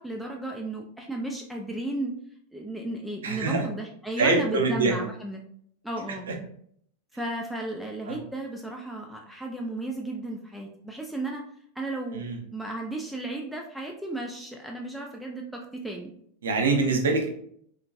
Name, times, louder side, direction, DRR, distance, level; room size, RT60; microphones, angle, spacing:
voice 1, 0.0-2.1 2.5-5.4 5.8-6.3 7.1-11.4 11.8-16.1, right 2 dB, 5° right, 0 dB, 0.3 m, -34 dB
voice 2, 3.2-3.6 4.2-4.9 6.3-6.4 8.1-8.2 12.1-12.4 16.4-17.3, right 3 dB, 65° right, 2 dB, 0.6 m, -24 dB
2.9 x 2.5 x 2.3 m, 0.65 s
figure-of-eight pair, 90°, 0 cm